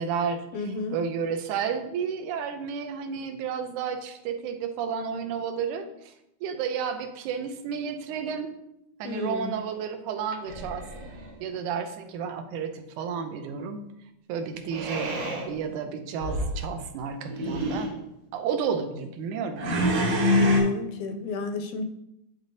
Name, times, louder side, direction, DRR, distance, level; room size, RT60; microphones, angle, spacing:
voice 1, 0.0-0.5 0.9-6.1 6.4-8.5 9.0-11.0 11.4-13.8 14.3-17.9 18.3-19.6, right 6 dB, 85° right, 7 dB, 2.1 m, -31 dB
voice 2, 0.5-1.0 9.0-9.5 20.3-21.8, left 4 dB, 80° left, 6 dB, 1.9 m, -32 dB
sound 1, 10.5-11.3 14.7-15.5 16.2-16.6 17.3-17.9 19.6-20.6, equal, 65° right, 2.5 m, -26 dB
10.5 x 4.0 x 2.7 m, 0.83 s
omnidirectional pair, 3.4 m